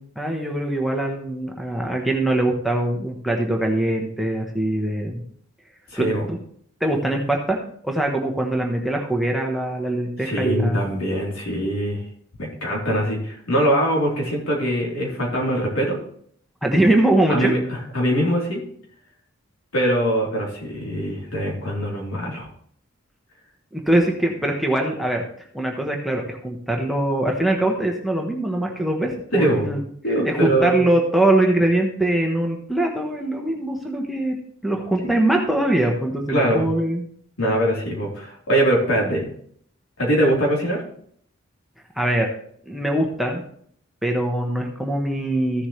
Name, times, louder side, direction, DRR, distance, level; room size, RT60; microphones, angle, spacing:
voice 1, 0.2-5.2 6.0-6.4 6.8-7.6 7.8-10.8 16.6-17.5 23.7-25.2 25.5-29.8 30.2-34.4 34.6-37.0 41.9-42.3 42.7-43.5 44.0-45.7, right 1 dB, ahead, 0 dB, 1.1 m, -22 dB
voice 2, 5.9-6.3 10.2-12.0 12.4-16.0 17.3-18.6 19.7-22.5 29.3-29.7 30.0-30.8 35.0-35.2 36.3-36.7 37.4-39.3 40.0-40.8, right 1 dB, 90° left, -2 dB, 3.6 m, -22 dB
14.5 x 7.2 x 3.2 m, 0.63 s
head